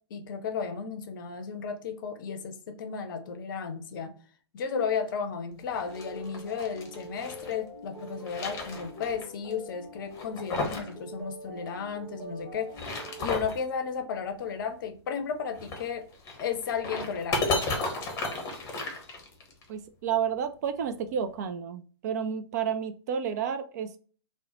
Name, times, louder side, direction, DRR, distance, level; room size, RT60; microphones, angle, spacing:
voice 1, 0.1-4.1 4.5-12.7 13.2-16.1 16.4-17.5, left 6 dB, 50° left, 8 dB, 0.6 m, -34 dB
sound 1, 5.7-7.5 8.0-9.2 9.5-9.6 10.1-10.9 11.2-11.3 12.5-13.6 15.5-19.6, left 3 dB, 20° left, 0.9 m, -33 dB
sound 2, 5.8-13.3, equal, ahead, 1.1 m, -45 dB
voice 2, 19.7-24.0, right 7 dB, 40° right, 9 dB, 0.3 m, -31 dB
3.7 x 2.1 x 2.9 m, 0.41 s
figure-of-eight pair, 115°, 14 cm